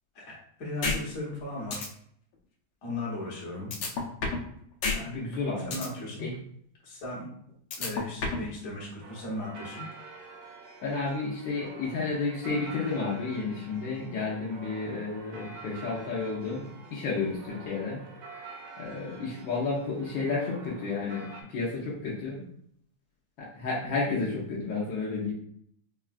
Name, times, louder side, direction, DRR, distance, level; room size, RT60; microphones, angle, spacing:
voice 1, 0.1-1.8 2.8-3.7 4.9-5.2 5.6-6.2 6.8-7.3 7.8-9.8, left 1 dB, 50° left, -5 dB, 1.4 m, -37 dB
sound 1, 0.8-1.0 1.3-1.4 1.7-1.9 3.7-4.5 4.8-5.0 5.3-5.9 7.7-8.5, left 4 dB, 90° left, 1.5 m, -29 dB
voice 2, 5.1-5.8 6.2-6.4 10.8-18.0 18.8-22.4 23.4-25.3, left 4 dB, 70° left, -6 dB, 1.5 m, -31 dB
sound 2, 9.0-21.4, right 4 dB, 70° right, 1.2 m, -47 dB
4.6 x 2.2 x 2.4 m, 0.67 s
omnidirectional pair, 2.3 m